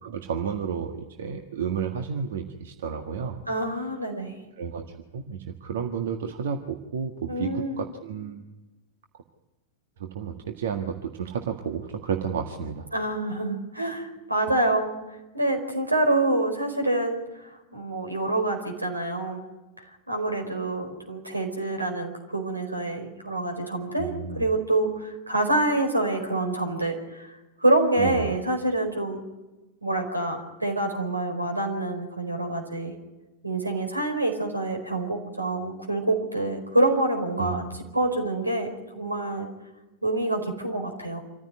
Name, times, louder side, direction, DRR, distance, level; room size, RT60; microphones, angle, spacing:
voice 1, 0.0-3.4 4.6-4.8 5.1-8.4 10.0-12.9 24.0-24.5 28.0-28.3 37.4-37.7, right 7 dB, 60° right, 5 dB, 1.7 m, -31 dB
voice 2, 3.5-4.4 7.3-7.8 12.9-14.9 15.3-19.4 19.8-29.2 29.8-32.9 33.4-37.6 37.9-39.5 40.0-41.2, right 2 dB, 85° right, 4 dB, 4.7 m, -26 dB
27.0 x 15.0 x 9.5 m, 1.1 s
figure-of-eight pair, 90°, 0 cm